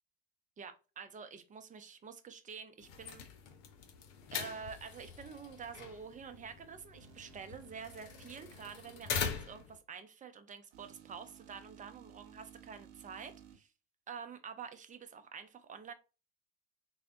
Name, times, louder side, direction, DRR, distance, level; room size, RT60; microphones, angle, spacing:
voice 1, 0.6-3.2 4.3-13.7 14.1-15.9, right 6 dB, 25° right, 0.6 m, -48 dB
sound 1, 2.8-9.8, left 7 dB, 60° left, 0.7 m, -43 dB
sound 2, 7.0-9.6 10.7-13.6, right 9 dB, 60° right, 0.8 m, -57 dB
3.5 x 2.1 x 3.5 m
hypercardioid pair, 70°, 33 cm